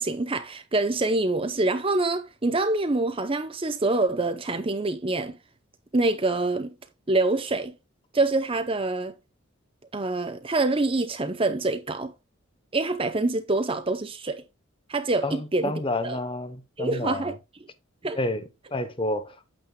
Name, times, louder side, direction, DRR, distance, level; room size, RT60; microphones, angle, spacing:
voice 1, 0.0-5.4 5.9-6.7 7.1-7.7 8.1-9.1 9.9-12.1 12.7-14.4 14.9-15.7 16.0-16.2 16.8-17.3 18.0-18.2, right 2 dB, 25° right, 0.8 m, -25 dB
voice 2, 15.2-17.4 18.1-19.4, left 2 dB, 25° left, 0.9 m, -30 dB
8.9 x 7.7 x 2.3 m
head